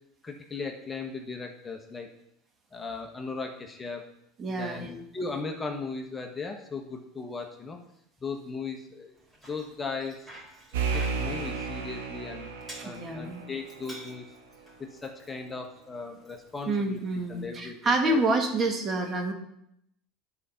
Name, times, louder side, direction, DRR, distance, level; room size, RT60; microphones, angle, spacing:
voice 1, 0.2-2.1 2.7-4.0 4.6-7.8 8.2-9.1 9.5-10.2 10.9-12.5 12.8-14.2 15.0-18.2, left 4 dB, 20° left, 3 dB, 1.3 m, -37 dB
voice 2, 4.4-5.0 12.8-13.4 16.7-19.3, right 2 dB, 30° right, 3 dB, 1.8 m, -28 dB
Bicycle, 9.1-17.5, right 1 dB, 10° right, 3.9 m, -51 dB
sound 1, 10.7-14.2, right 5 dB, 80° right, 1.6 m, -33 dB
10.5 x 5.1 x 5.7 m, 0.78 s
hypercardioid pair, 90°, 0 cm